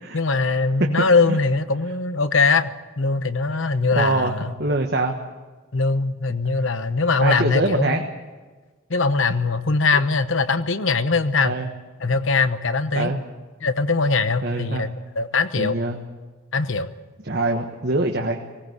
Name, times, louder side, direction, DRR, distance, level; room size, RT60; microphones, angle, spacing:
voice 1, 0.1-2.7 3.0-4.5 5.7-8.1 8.9-11.5 12.0-13.1 13.6-15.8 16.5-16.9, left 4 dB, 65° left, 11 dB, 1.0 m, -21 dB
voice 2, 3.9-5.2 7.2-8.0 11.4-11.7 12.9-13.3 14.4-14.9 15.6-16.0 17.2-18.4, right 2 dB, 50° right, 3 dB, 1.4 m, -24 dB
19.0 x 18.5 x 8.1 m, 1.3 s
head